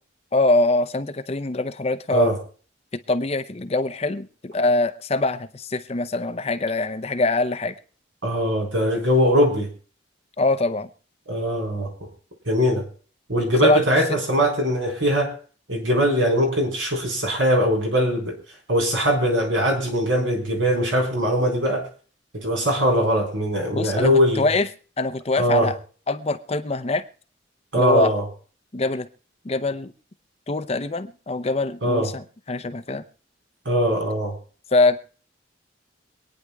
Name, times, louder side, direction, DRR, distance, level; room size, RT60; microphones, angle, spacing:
voice 1, 0.3-2.3 3.1-7.7 10.4-10.9 13.6-13.8 14.1-14.2 23.7-24.7 25.0-25.7 26.1-27.0 27.7-28.1 28.7-29.1 29.4-29.9 30.5-33.0 34.7-35.0, left 2 dB, 35° left, 10 dB, 0.6 m, -23 dB
voice 2, 8.2-9.7 11.3-11.9 12.5-12.8 13.3-15.3 15.7-18.4 18.7-21.9 22.3-24.5 25.4-25.7 27.7-28.2 31.8-32.1 33.6-34.3, equal, 80° right, 1 dB, 4.3 m, -21 dB
25.5 x 9.6 x 2.3 m, 0.40 s
head